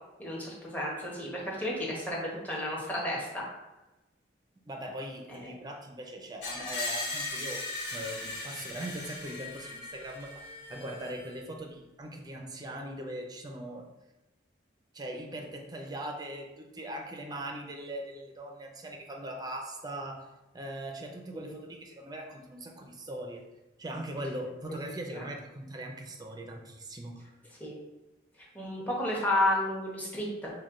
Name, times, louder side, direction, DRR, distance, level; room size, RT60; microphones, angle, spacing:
voice 1, 0.2-3.4 21.3-21.5 25.1-25.2 27.6-27.8 28.5-30.5, left 1 dB, 10° left, -4 dB, 1.0 m, -32 dB
voice 2, 4.7-13.9 14.9-20.3 20.5-23.4 23.8-27.2, right 1 dB, 20° right, 2 dB, 0.6 m, -40 dB
Screech, 6.4-11.4, left 2 dB, 85° left, 1.2 m, -38 dB
6.3 x 2.3 x 3.7 m, 1.0 s
head